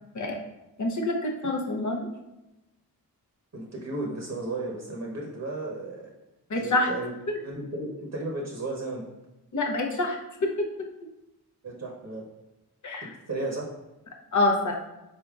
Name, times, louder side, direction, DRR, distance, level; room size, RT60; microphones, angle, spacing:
voice 1, 0.8-2.1 6.5-6.9 7.3-7.4 9.5-10.7 12.8-13.1 14.3-14.7, left 2 dB, 50° left, 1 dB, 0.8 m, -26 dB
voice 2, 3.5-6.1 6.5-7.1 7.4-9.0 11.6-12.3 13.3-13.7, right 2 dB, 40° right, -1 dB, 0.8 m, -34 dB
3.9 x 3.6 x 2.3 m, 0.99 s
cardioid pair, 45°, 39 cm